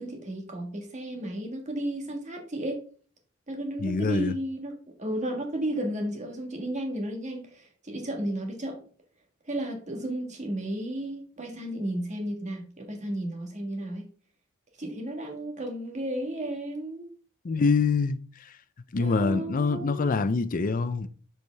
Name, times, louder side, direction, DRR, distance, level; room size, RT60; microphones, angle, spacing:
voice 1, 0.0-2.8 3.5-8.8 9.4-14.1 14.8-17.1 19.0-20.1, right 1 dB, 35° right, 1.6 m, -33 dB
voice 2, 3.8-4.3 17.4-18.5 18.9-21.1, left 4 dB, 40° left, 0.5 m, -25 dB
6.8 x 4.9 x 3.4 m
head